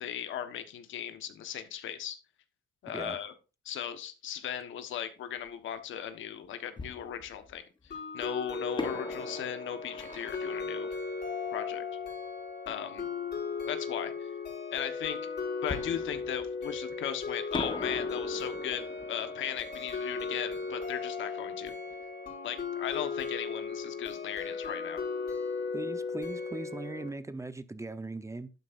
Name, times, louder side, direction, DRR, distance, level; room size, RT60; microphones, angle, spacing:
voice 1, 0.0-2.2 2.8-3.3 3.6-7.6 8.1-10.9 11.5-11.8 12.7-13.1 13.7-14.3 14.7-15.2 15.6-21.7 22.4-25.0, left 9 dB, 75° left, 1.3 m, -37 dB
Fireworks, 5.5-5.6 6.8-7.9 8.8-12.2 15.7-17.1 17.5-22.1 22.3-22.4 22.9-23.2, left 3 dB, 25° left, 1.2 m, -43 dB
sound 1, 7.9-27.1, left 4 dB, 55° left, 5.5 m, -36 dB
voice 2, 25.7-28.5, right 2 dB, 15° right, 0.8 m, -39 dB
11.5 x 8.9 x 2.6 m
cardioid pair, 90°, 20 cm